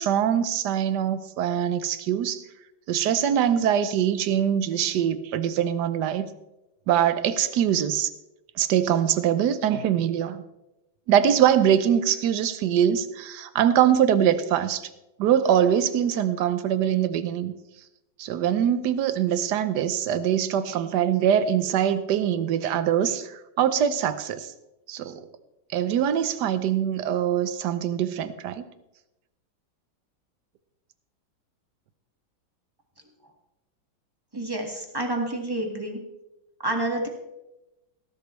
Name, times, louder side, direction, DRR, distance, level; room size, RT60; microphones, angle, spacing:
voice 1, 0.0-2.4 2.9-6.3 6.9-8.1 8.6-10.4 11.1-14.9 15.2-17.5 18.2-24.5 24.9-25.3 25.7-28.6, right 9 dB, 65° right, 12 dB, 1.2 m, -23 dB
voice 2, 34.3-36.0 36.6-37.1, right 1 dB, 10° right, 2 dB, 1.7 m, -28 dB
18.0 x 11.5 x 3.2 m, 0.94 s
omnidirectional pair, 2.2 m